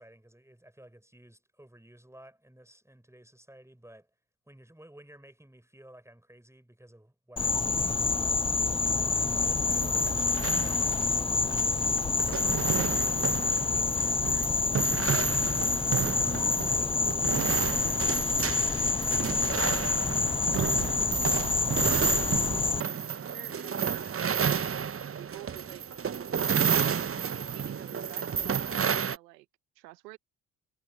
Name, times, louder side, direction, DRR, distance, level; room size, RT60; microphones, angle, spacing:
voice 1, 0.0-4.1 4.5-8.1 8.8-11.5, right 1 dB, 5° right, 6.1 m, -54 dB
Insect, 7.4-22.8, left 4 dB, 10° left, 0.4 m, -27 dB
sound 1, 9.2-29.2, right 7 dB, 30° right, 0.9 m, -31 dB
voice 2, 12.5-15.2 16.3-18.3 19.0-19.9 20.5-21.1 21.7-25.8 26.4-27.0 27.5-29.5 29.7-30.2, right 19 dB, 90° right, 1.3 m, -50 dB
hypercardioid pair, 50°, 48 cm